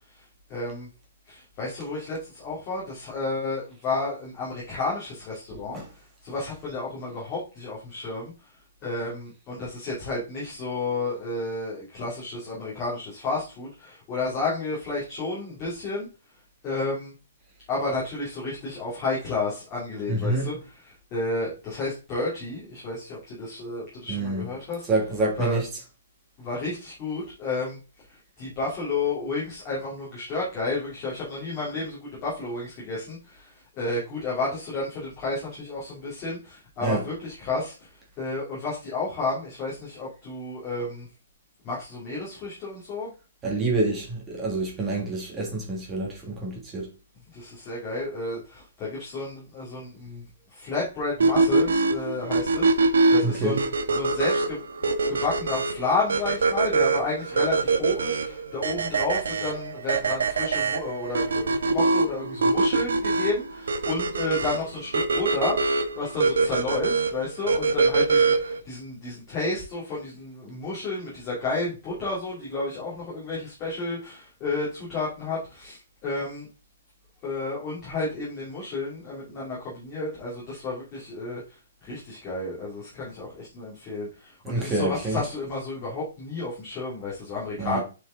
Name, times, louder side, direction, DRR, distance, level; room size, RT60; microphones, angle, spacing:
voice 1, 0.5-0.9 1.3-5.8 6.2-8.3 8.8-16.1 16.6-17.1 17.7-20.5 20.8-24.9 25.4-25.6 26.4-27.8 28.1-37.9 38.2-41.1 41.6-43.1 47.3-50.2 50.5-76.5 77.2-87.8, left 3 dB, 15° left, 2.5 m, -31 dB
voice 2, 20.1-20.5 24.1-24.5 24.9-25.7 36.8-37.0 43.4-46.9 53.2-53.6 84.4-85.2 87.6-87.8, right 2 dB, 10° right, 1.6 m, -27 dB
sound 1, 51.2-68.6, right 3 dB, 85° right, 1.1 m, -24 dB
7.7 x 4.7 x 3.8 m
hypercardioid pair, 180°, 0 cm